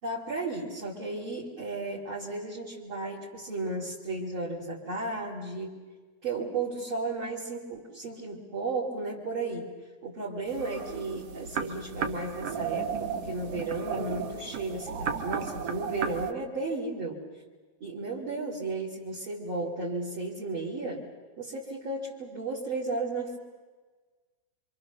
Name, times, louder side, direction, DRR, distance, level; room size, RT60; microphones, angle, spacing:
voice 1, 0.0-5.8 6.2-9.7 10.0-17.2 17.8-21.1 21.4-23.4, right 3 dB, 35° right, -5 dB, 3.5 m, -34 dB
sound 1, 10.5-16.3, right 6 dB, 60° right, 1.7 m, -34 dB
27.5 x 26.0 x 6.8 m, 1.4 s
omnidirectional pair, 4.2 m